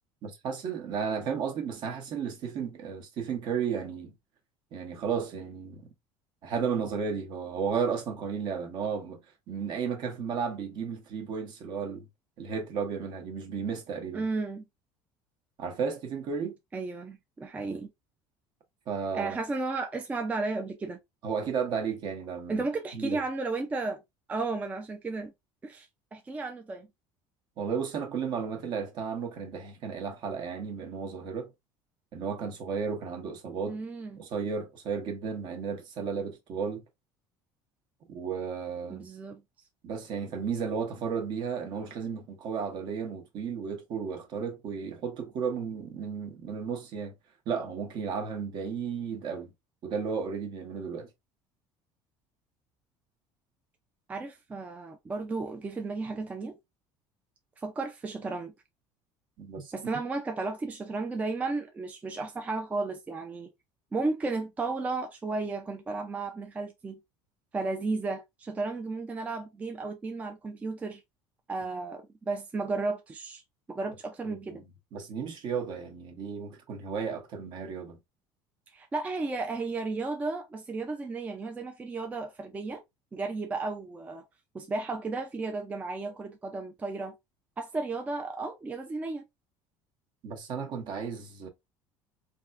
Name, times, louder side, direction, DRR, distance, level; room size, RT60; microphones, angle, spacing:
voice 1, 0.2-4.1 4.7-5.9 6.4-9.2 9.5-12.1 12.4-14.2 15.6-16.5 18.9-19.4 21.2-22.6 22.9-23.2 27.6-31.5 32.1-33.8 34.2-36.8 38.1-39.1 39.8-47.1 47.5-49.5 49.8-51.1 59.4-59.7 74.3-74.6 74.9-78.0 90.2-91.5, right 6 dB, 50° right, 0.9 m, -33 dB
voice 2, 14.1-14.7 16.7-17.9 19.1-21.0 22.5-24.0 24.3-25.3 25.6-26.9 33.7-34.2 38.9-39.4 54.1-56.6 57.6-58.5 59.7-63.5 63.9-67.0 67.5-71.0 71.5-73.4 73.7-74.7 78.7-82.8 83.1-84.2 84.5-87.2 87.6-89.2, right 3 dB, 15° right, 0.4 m, -34 dB
3.4 x 2.5 x 2.4 m
cardioid pair, 140°, 10 cm